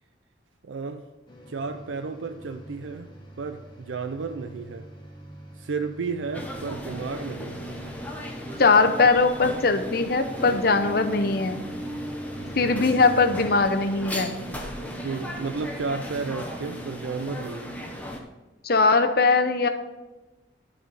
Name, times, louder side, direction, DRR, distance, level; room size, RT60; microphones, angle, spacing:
voice 1, 0.6-1.0 1.5-3.1 3.4-4.9 5.6-7.7 12.6-12.9 15.0-17.7, right 4 dB, 90° right, 7 dB, 0.5 m, -32 dB
sound 1, 1.3-13.5, equal, 25° left, 1.2 m, -42 dB
sound 2, 6.3-18.2, equal, 10° left, 0.8 m, -36 dB
voice 2, 8.6-11.6 12.5-14.3 18.6-19.7, left 4 dB, 55° left, 8 dB, 0.7 m, -20 dB
11.0 x 4.2 x 5.2 m, 1.1 s
head